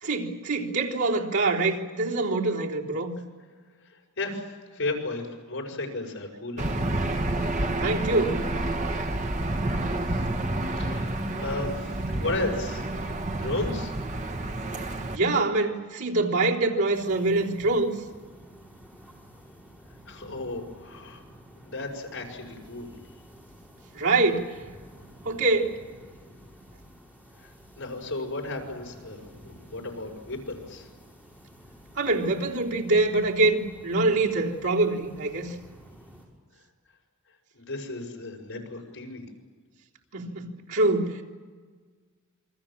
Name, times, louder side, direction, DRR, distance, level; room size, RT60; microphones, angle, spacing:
voice 1, 0.0-3.1 7.8-8.4 15.1-17.9 23.9-24.6 25.2-25.8 32.0-35.5 40.1-41.2, right 2 dB, 80° right, -3 dB, 3.7 m, -25 dB
voice 2, 3.8-6.7 10.8-12.9 13.4-13.9 20.1-21.2 21.6-22.9 27.4-30.9 37.5-39.3, left 2 dB, 60° left, 1 dB, 6.1 m, -34 dB
Aircraft / Engine, 6.6-15.2, right 1 dB, 35° right, 1.4 m, -29 dB
sound 1, 16.9-36.3, equal, 5° right, 6.1 m, -51 dB
28.5 x 23.5 x 7.5 m, 1.5 s
head